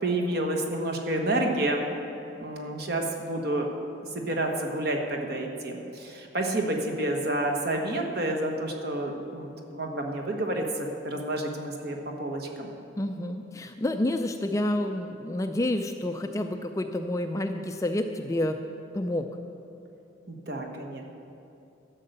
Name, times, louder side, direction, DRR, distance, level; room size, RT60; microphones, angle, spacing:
voice 1, 0.0-1.9 2.4-3.7 4.1-12.7 20.3-21.0, right 1 dB, 50° right, 2 dB, 1.2 m, -29 dB
voice 2, 13.0-18.6 18.9-19.3, left 1 dB, 15° left, 6 dB, 0.3 m, -29 dB
12.5 x 6.6 x 7.9 m, 2.8 s
head